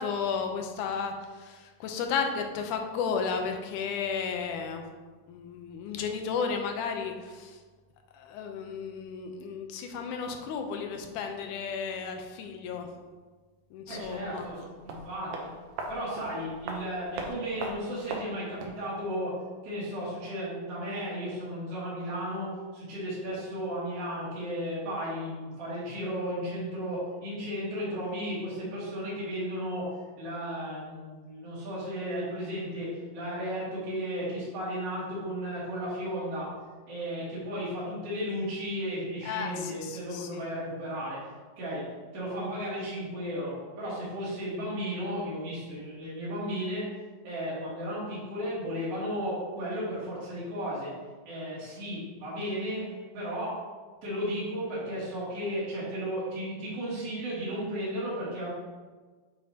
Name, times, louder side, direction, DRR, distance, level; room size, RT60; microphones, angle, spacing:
voice 1, 0.0-4.8 5.3-7.6 8.1-13.0 13.7-14.5 23.2-23.3 39.3-40.4 48.2-48.3, left 6 dB, 80° left, 4 dB, 2.2 m, -33 dB
voice 2, 13.9-15.5 15.9-19.3 19.6-22.5 22.7-29.8 30.2-32.9 33.1-36.5 36.9-41.2 41.6-41.8 42.1-46.9 47.2-50.9 51.2-52.8 53.1-53.5 54.0-58.5, equal, 50° right, -10 dB, 3.2 m, -34 dB
sound 1, 13.9-18.9 19.1-19.2, right 3 dB, 70° right, 2.1 m, -40 dB
7.9 x 7.4 x 2.9 m, 1.4 s
omnidirectional pair, 3.6 m